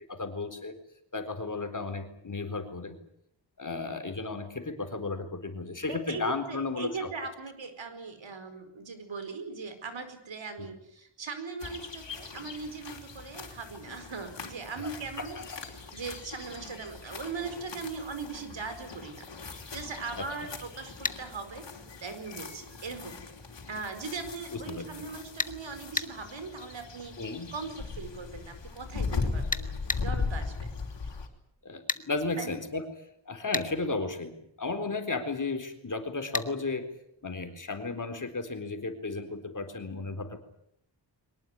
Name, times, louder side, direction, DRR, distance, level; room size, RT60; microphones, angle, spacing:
voice 1, 0.1-0.7 1.1-3.0 3.6-7.1 14.8-14.9 15.2-15.6 20.2-20.5 24.5-25.1 27.2-27.5 31.6-32.8 33.3-36.9 37.2-40.4, left 3 dB, 40° left, 7 dB, 4.0 m, -34 dB
voice 2, 5.9-15.4 15.9-21.6 22.0-23.2 23.7-27.1 27.5-30.5 32.4-32.6, right 4 dB, 75° right, 9 dB, 4.8 m, -39 dB
sound 1, 11.6-31.3, left 4 dB, 65° left, 4.6 m, -39 dB
sound 2, 21.1-21.2 25.4-25.6 26.0-26.1 29.5-30.1 31.9-32.1 33.5-33.7 36.3-36.5, left 2 dB, 15° left, 1.4 m, -30 dB
23.5 x 20.0 x 9.7 m, 0.77 s
wide cardioid pair, 100°, 46 cm